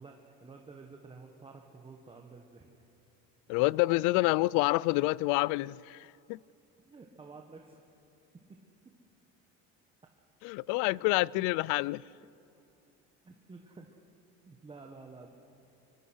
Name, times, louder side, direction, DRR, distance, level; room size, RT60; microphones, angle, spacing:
voice 1, 0.0-2.9 3.9-4.0 6.8-7.8 8.3-9.0 10.9-11.0 11.3-11.5 13.2-14.0 14.5-15.3, right 4 dB, 20° right, 1.5 m, -51 dB
voice 2, 3.5-6.4 10.4-12.0, left 21 dB, 85° left, 0.5 m, -28 dB
24.5 x 24.5 x 6.4 m
cardioid pair, 135°, 30 cm